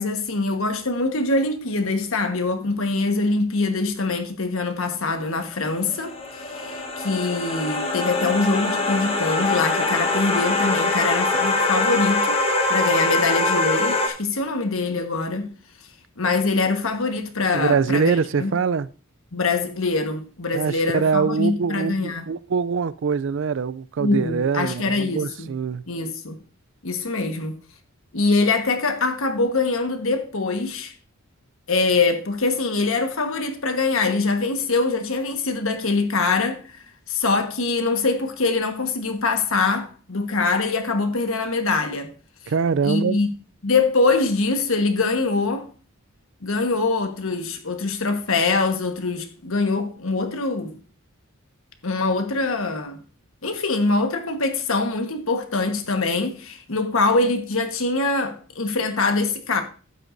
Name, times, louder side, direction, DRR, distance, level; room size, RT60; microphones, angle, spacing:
voice 1, 0.0-15.5 16.2-18.5 19.3-22.2 24.0-25.5 25.9-26.4 26.8-27.6 28.1-30.9 31.7-36.6 37.1-42.1 42.8-43.3 43.6-45.7 46.4-50.7 51.8-53.0 53.4-59.6, left 3 dB, 70° left, 1.4 m, -23 dB
sound 1, 5.6-14.1, left 2 dB, 25° left, 1.2 m, -23 dB
voice 2, 17.5-18.9 20.5-25.8 42.5-43.2, right 5 dB, 60° right, 0.4 m, -23 dB
12.0 x 9.1 x 2.6 m
head